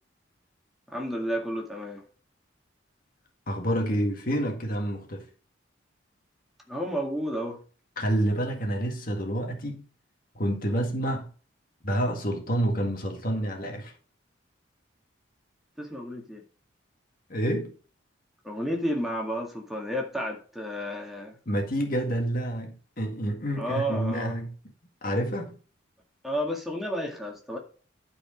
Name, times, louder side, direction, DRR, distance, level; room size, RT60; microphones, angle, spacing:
voice 1, 0.9-2.0 6.7-7.6 15.8-16.4 18.4-21.4 23.6-24.3 26.2-27.6, equal, ahead, 2.0 m, -31 dB
voice 2, 3.5-5.3 8.0-9.9 10.4-11.3 11.8-13.9 17.3-17.7 21.5-24.5 25.0-25.6, right 1 dB, 50° left, 1.9 m, -28 dB
12.0 x 4.9 x 5.2 m
head